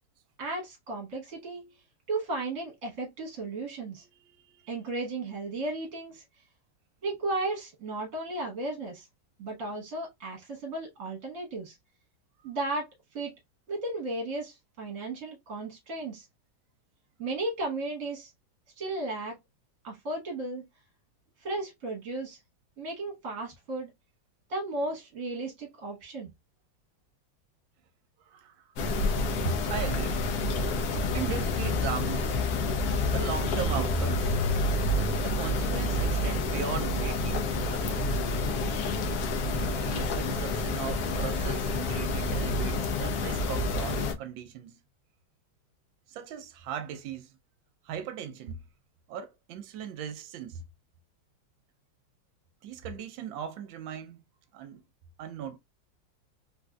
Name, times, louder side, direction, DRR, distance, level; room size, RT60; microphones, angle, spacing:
voice 1, 0.4-1.7 2.1-4.0 4.7-6.2 7.0-9.1 9.4-11.8 12.4-13.3 13.7-16.3 17.2-18.3 18.8-19.4 19.8-20.6 21.4-22.4 22.8-23.9 24.5-26.3, right 2 dB, 50° right, 1.4 m, -34 dB
voice 2, 3.9-4.9 12.4-12.5 28.2-28.7 29.4-30.3 31.1-32.3 33.0-34.3 35.2-38.0 39.4-44.8 46.1-47.4 47.8-48.7 49.1-50.6 52.6-54.2 54.5-54.8 55.2-55.6, right 7 dB, 75° right, 1.3 m, -38 dB
sound 1, 28.8-44.1, left 2 dB, 70° left, 0.9 m, -28 dB
3.6 x 2.6 x 2.3 m
omnidirectional pair, 2.2 m